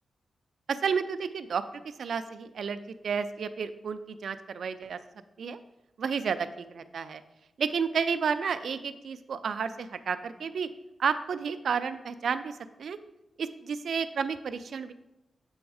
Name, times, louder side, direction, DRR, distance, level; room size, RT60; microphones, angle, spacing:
voice 1, 0.7-1.6 2.0-5.0 5.4-5.6 6.0-7.2 7.6-10.7 11.0-13.0 13.4-14.9, right 6 dB, 70° right, 12 dB, 0.4 m, -31 dB
7.1 x 3.4 x 4.7 m, 0.96 s
wide cardioid pair, 150°, 0 cm